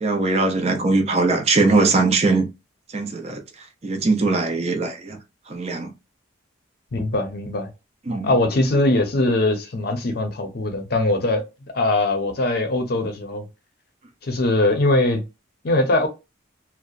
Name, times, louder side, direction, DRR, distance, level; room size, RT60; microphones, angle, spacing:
voice 1, 0.0-2.5 2.9-3.4 3.8-5.2 5.5-5.9 8.1-8.3, right 3 dB, 35° right, 0.4 m, -20 dB
voice 2, 6.9-7.7 8.2-11.4 11.7-13.5 14.2-15.2 15.6-16.1, left 2 dB, 55° left, 0.6 m, -21 dB
2.8 x 2.1 x 2.3 m
head